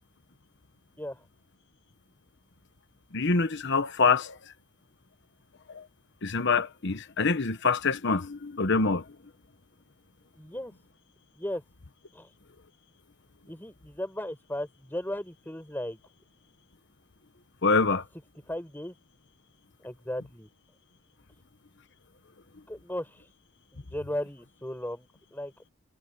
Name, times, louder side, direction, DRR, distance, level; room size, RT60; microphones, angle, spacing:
voice 1, 3.1-4.4 5.7-5.8 6.2-9.0 17.6-18.0, left 4 dB, 55° left, 1.1 m, -25 dB
voice 2, 10.3-10.7 11.3-11.6 12.1-12.3 13.5-16.0 18.5-18.9 19.8-20.5 22.7-23.3 23.7-25.5, left 1 dB, 10° left, 5.8 m, -36 dB
head